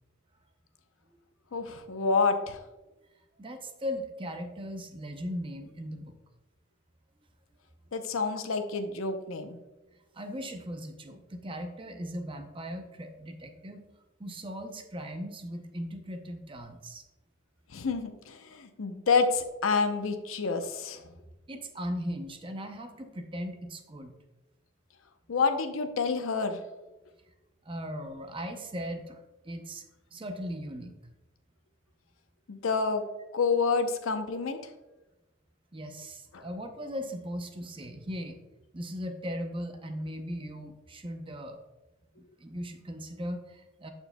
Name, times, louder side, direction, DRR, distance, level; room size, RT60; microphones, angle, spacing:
voice 1, 1.5-2.6 7.9-9.6 17.7-21.1 25.3-26.6 32.5-33.0 33.3-34.7 36.3-36.4, left 4 dB, 85° left, 7 dB, 0.7 m, -28 dB
voice 2, 3.4-6.1 10.1-13.8 14.2-17.0 21.5-24.1 27.7-29.8 30.1-30.9 35.7-38.4 38.7-41.6 42.4-43.9, equal, 25° right, 6 dB, 0.6 m, -38 dB
12.5 x 4.5 x 2.2 m, 1.1 s
head